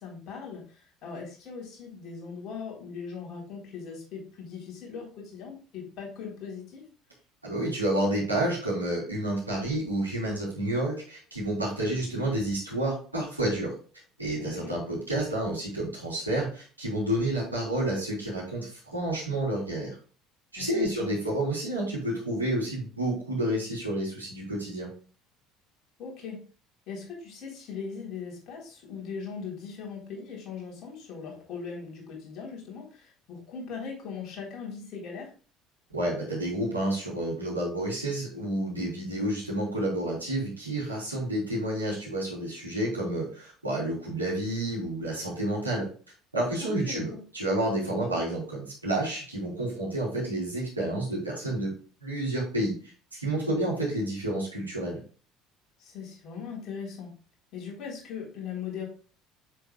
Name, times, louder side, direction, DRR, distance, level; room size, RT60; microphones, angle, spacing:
voice 1, 0.0-6.8 14.4-14.7 20.6-21.3 26.0-26.5 26.9-35.3 46.6-47.2 55.8-57.1 57.5-58.9, left 6 dB, 50° left, -2 dB, 3.8 m, -39 dB
voice 2, 7.4-13.7 14.2-19.9 20.5-24.9 35.9-45.9 46.3-51.7 52.0-52.7 53.1-55.0, right 1 dB, 85° right, -5 dB, 3.4 m, -30 dB
7.9 x 7.5 x 2.3 m, 0.38 s
figure-of-eight pair, 60°, 0 cm